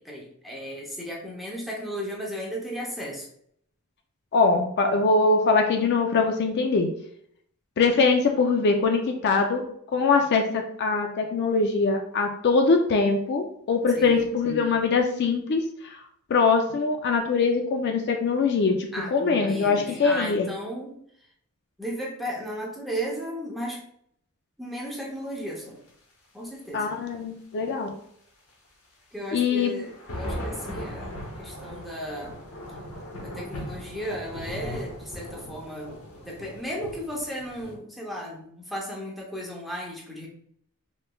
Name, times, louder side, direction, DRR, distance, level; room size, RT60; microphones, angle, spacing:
voice 1, 0.0-3.3 13.9-14.2 18.9-20.9 21.8-23.8 24.6-25.8 26.3-27.0 29.1-32.3 33.2-35.9 36.2-40.3, equal, ahead, -3 dB, 0.6 m, -35 dB
voice 2, 4.3-6.9 7.8-9.6 9.9-16.0 16.3-20.5 26.7-27.9 29.3-29.7, left 4 dB, 50° left, 4 dB, 0.3 m, -22 dB
sound 1, 26.9-27.0 27.7-27.8 29.6-37.7, equal, 70° left, 0.9 m, -38 dB
3.1 x 3.1 x 2.2 m, 0.67 s
head